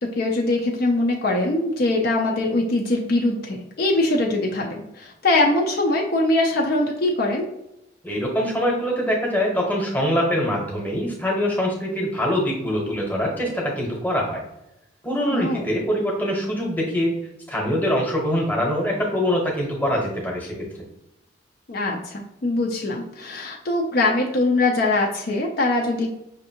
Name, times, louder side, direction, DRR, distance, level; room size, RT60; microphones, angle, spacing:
voice 1, 0.0-7.5 15.3-15.6 21.7-26.1, left 2 dB, 50° left, 0 dB, 0.5 m, -22 dB
voice 2, 8.0-14.4 15.0-17.1 17.5-20.6, equal, 10° left, -2 dB, 0.9 m, -23 dB
5.8 x 2.6 x 2.8 m, 0.88 s
head